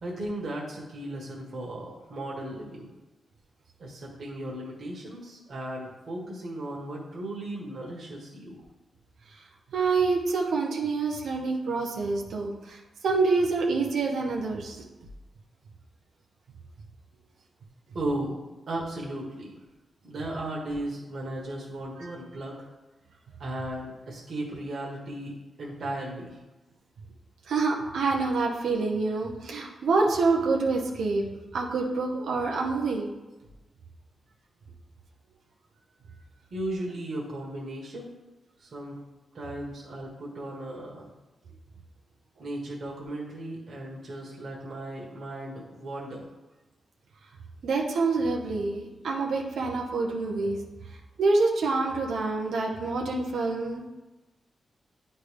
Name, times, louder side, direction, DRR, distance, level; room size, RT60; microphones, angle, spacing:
voice 1, 0.0-2.9 3.8-8.6 17.9-18.4 18.7-19.5 20.0-22.7 23.4-25.3 25.6-26.4 36.5-38.1 38.6-39.0 39.3-41.1 42.4-46.3, right 1 dB, 60° right, -4 dB, 1.5 m, -36 dB
voice 2, 9.7-14.8 22.0-22.1 27.5-31.2 31.5-33.1 47.6-50.6 51.2-53.8, right 3 dB, 85° right, -1 dB, 0.8 m, -27 dB
9.2 x 3.4 x 3.4 m, 1.1 s
cardioid pair, 70°, 0 cm